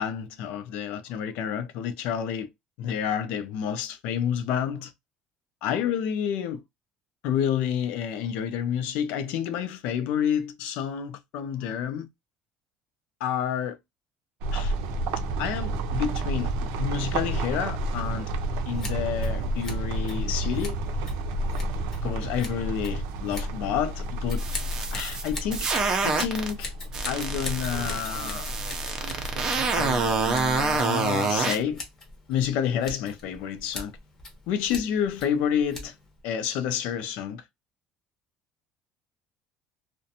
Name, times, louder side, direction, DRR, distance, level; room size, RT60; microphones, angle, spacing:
voice 1, 0.0-2.5 2.8-4.9 5.6-6.6 7.2-12.1 13.2-13.8 14.5-14.7 15.4-16.5 16.8-18.3 18.7-20.8 22.0-24.5 24.9-25.7 26.0-26.7 27.0-28.5 29.8-31.8 32.3-33.9 34.5-35.9 36.2-37.4, left 8 dB, 65° left, 0.5 m, -29 dB
sound 1, 14.4-30.8, right 2 dB, 80° right, 0.5 m, -31 dB
Scissors, 18.7-36.2, left 2 dB, 20° left, 0.7 m, -43 dB
sound 2, 24.3-26.5 26.9-31.6, right 4 dB, 25° right, 0.5 m, -27 dB
2.5 x 2.1 x 2.6 m
cardioid pair, 175°, 2 cm